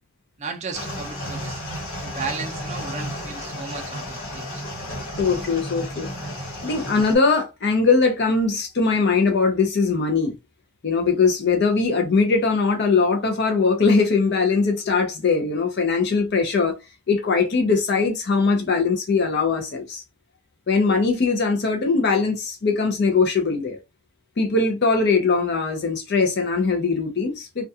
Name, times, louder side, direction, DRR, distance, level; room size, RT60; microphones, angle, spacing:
voice 1, 0.4-1.6 2.0-4.6, right 5 dB, 35° right, 0.4 m, -34 dB
sound 1, 0.7-7.2, equal, 90° left, 1.3 m, -33 dB
voice 2, 5.2-6.1 6.6-10.4 10.8-16.8 17.1-20.0 20.7-23.8 24.4-27.7, left 4 dB, 50° left, 0.5 m, -21 dB
2.3 x 2.2 x 2.7 m
head